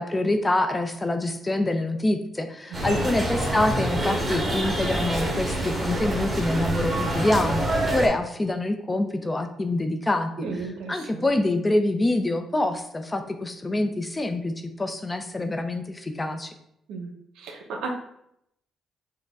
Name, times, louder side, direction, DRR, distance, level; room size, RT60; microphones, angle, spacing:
voice 1, 0.0-10.5 10.9-16.5, left 2 dB, 20° left, 7 dB, 0.5 m, -26 dB
sound 1, 2.7-8.1, right 1 dB, 20° right, 1.4 m, -26 dB
voice 2, 10.4-11.3 16.9-17.9, right 4 dB, 90° right, 3 dB, 0.7 m, -35 dB
6.3 x 2.2 x 3.5 m, 0.75 s
cardioid pair, 90°, 0 cm